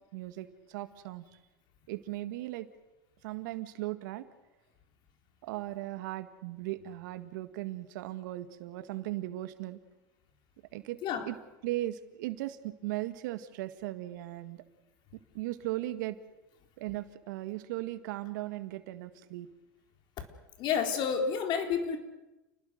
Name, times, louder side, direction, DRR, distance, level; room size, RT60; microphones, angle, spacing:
voice 1, 0.1-1.3 1.9-2.7 3.2-4.2 5.4-9.8 10.7-11.0 11.2-11.4 11.6-14.6 15.3-16.2 16.8-19.5, right 16 dB, 70° right, 11 dB, 1.7 m, -37 dB
voice 2, 20.6-22.0, left 7 dB, 45° left, 5 dB, 4.0 m, -30 dB
29.5 x 19.5 x 6.6 m, 1.0 s
hypercardioid pair, 105°, 11 cm